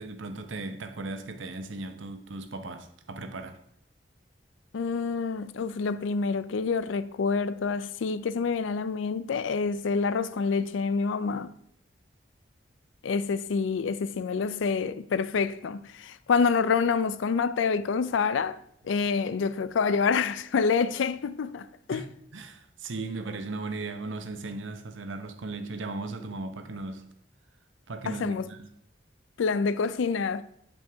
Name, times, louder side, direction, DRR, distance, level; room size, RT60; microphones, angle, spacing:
voice 1, 0.0-3.6 21.9-22.1 22.3-27.0 27.9-28.7, right 3 dB, 90° right, 0.8 m, -37 dB
voice 2, 4.7-11.5 13.0-18.6 18.8-22.0 28.1-28.5 29.4-30.4, left 5 dB, 90° left, 0.4 m, -27 dB
9.2 x 5.3 x 3.4 m
head